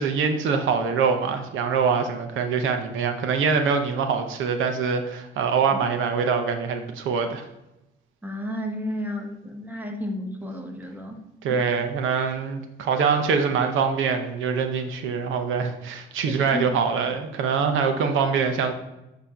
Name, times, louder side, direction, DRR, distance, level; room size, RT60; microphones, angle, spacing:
voice 1, 0.0-7.4 11.4-18.7, right 5 dB, 80° right, 6 dB, 0.8 m, -24 dB
voice 2, 8.2-11.2 11.5-11.6 16.3-16.7, left 1 dB, 10° right, 3 dB, 1.1 m, -32 dB
8.1 x 2.9 x 5.0 m, 0.93 s
cardioid pair, 90°, 20 cm